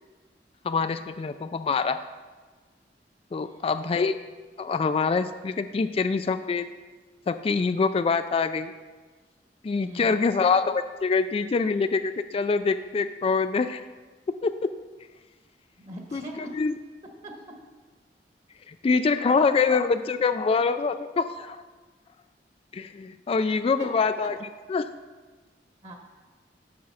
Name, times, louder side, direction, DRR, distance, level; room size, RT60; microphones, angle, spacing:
voice 1, 0.6-2.0 3.3-4.2 4.6-6.7 7.3-8.7 9.6-13.8 14.3-14.7 16.1-16.2 16.5-16.7 18.7-21.6 22.7-24.4 24.7-24.9, left 4 dB, 35° left, 10 dB, 0.3 m, -25 dB
voice 2, 3.4-3.8 9.8-10.3 15.8-16.6 17.2-17.5 23.8-23.9 25.8-25.9, right 1 dB, 40° right, 1 dB, 1.3 m, -41 dB
7.8 x 7.0 x 5.6 m, 1.3 s
head